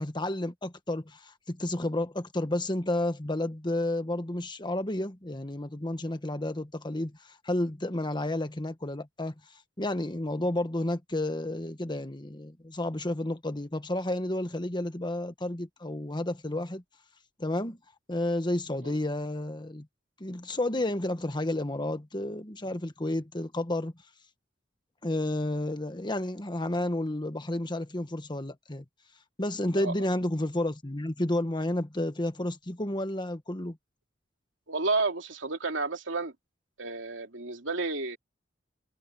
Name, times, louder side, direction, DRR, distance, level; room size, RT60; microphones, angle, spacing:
voice 1, 0.0-9.3 9.8-16.8 17.4-17.8 18.1-19.9 20.2-23.9 25.0-28.8 29.4-33.8, left 1 dB, 25° left, 1.5 m, -31 dB
voice 2, 34.7-36.3 36.8-38.2, right 3 dB, 80° right, 3.0 m, -31 dB
head